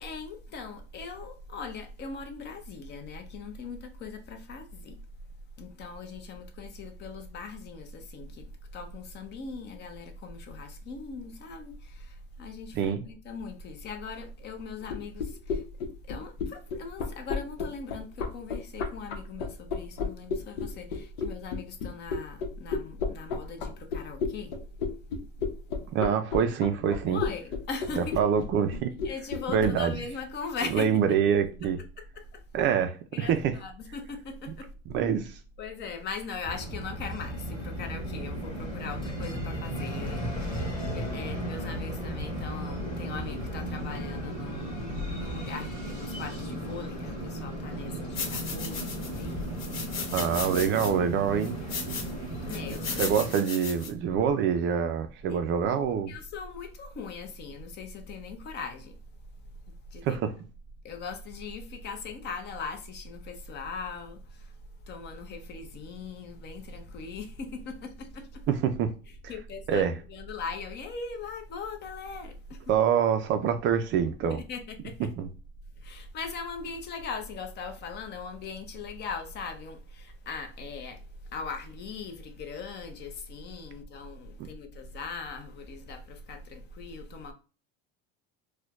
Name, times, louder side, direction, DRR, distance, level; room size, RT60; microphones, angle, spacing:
voice 1, 0.0-4.9 5.6-8.5 8.7-15.6 16.1-24.5 27.1-28.2 29.0-30.9 32.0-32.4 33.1-34.7 35.6-44.8 45.2-49.6 52.5-53.1 55.3-55.4 56.1-58.9 59.9-60.2 60.8-64.2 64.9-68.4 69.3-72.7 74.3-75.1 75.8-81.0 81.3-87.3, left 4 dB, 35° left, 0.7 m, -40 dB
sound 1, 14.8-30.0, left 5 dB, 85° left, 0.9 m, -32 dB
voice 2, 25.9-27.2 28.0-28.9 29.5-29.9 30.7-31.8 32.5-33.5 34.9-35.4 50.1-51.5 52.9-56.2 60.0-60.3 68.5-68.9 69.7-70.0 72.7-74.4 75.0-75.3 84.4-84.5, right 7 dB, 40° right, 0.4 m, -26 dB
sound 2, 36.4-53.3, right 1 dB, 20° left, 1.7 m, -35 dB
sound 3, 48.1-49.2 49.6-50.9 51.4-52.1 52.5-53.9, left 5 dB, 60° left, 1.4 m, -36 dB
4.3 x 2.2 x 2.4 m
cardioid pair, 140°, 29 cm